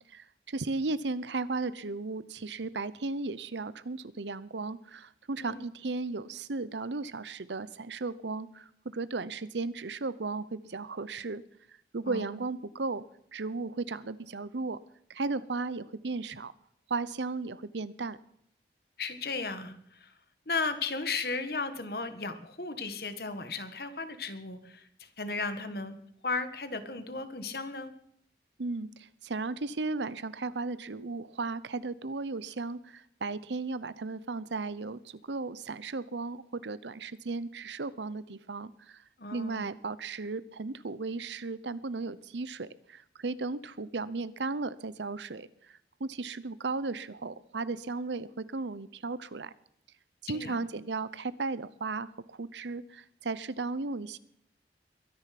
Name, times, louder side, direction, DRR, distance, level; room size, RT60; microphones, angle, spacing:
voice 1, 0.1-11.4 11.9-13.0 13.3-14.8 15.1-16.5 16.9-18.2 28.6-39.0 39.3-45.5 46.0-49.5 50.2-54.2, right 3 dB, 85° right, 17 dB, 0.8 m, -35 dB
voice 2, 19.0-20.1 20.5-26.0 26.2-27.9 39.2-39.6 50.3-50.6, left 4 dB, 60° left, 10 dB, 1.5 m, -35 dB
22.5 x 10.5 x 5.9 m, 0.72 s
head